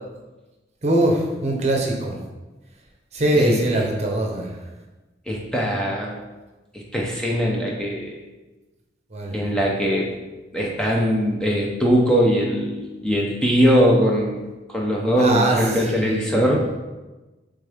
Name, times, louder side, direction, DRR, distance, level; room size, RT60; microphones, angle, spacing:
voice 1, 0.8-2.2 3.1-4.5 9.1-9.4 15.2-15.6 15.9-16.5, right 1 dB, 40° right, 0 dB, 1.0 m, -22 dB
voice 2, 3.4-3.8 5.3-6.2 6.7-8.2 9.3-10.1 10.5-14.4 14.7-16.7, equal, 5° left, -3 dB, 0.7 m, -21 dB
7.9 x 3.7 x 3.6 m, 1.2 s
head